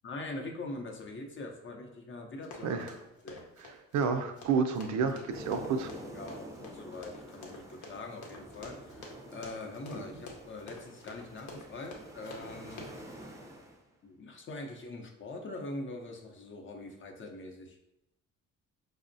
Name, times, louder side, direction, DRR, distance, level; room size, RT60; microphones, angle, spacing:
voice 1, 0.0-2.8 3.2-3.5 6.1-12.8 14.0-17.8, left 2 dB, 40° left, 3 dB, 0.6 m, -43 dB
Run, 2.4-13.1, left 2 dB, 70° left, 0.8 m, -48 dB
voice 2, 3.9-5.9, right 5 dB, 70° right, 7 dB, 0.5 m, -30 dB
sound 1, 5.3-13.8, equal, 10° right, 0.5 m, -48 dB
5.1 x 2.0 x 2.6 m, 0.87 s
cardioid pair, 90°, 30 cm